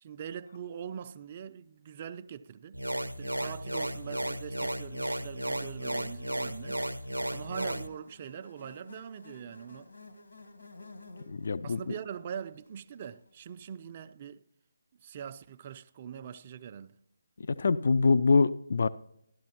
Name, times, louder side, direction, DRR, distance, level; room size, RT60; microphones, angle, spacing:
voice 1, 0.0-2.8 3.2-6.8 7.3-9.9 11.6-14.4 15.0-17.0, right 8 dB, 30° right, 0.4 m, -42 dB
sound 1, 2.7-7.9, right 1 dB, 90° right, 0.5 m, -34 dB
Buzz, 3.5-13.7, left 3 dB, 70° left, 1.5 m, -55 dB
voice 2, 11.3-11.9 17.4-18.9, left 4 dB, 55° left, 0.3 m, -25 dB
13.0 x 11.5 x 2.9 m
figure-of-eight pair, 150°, 0 cm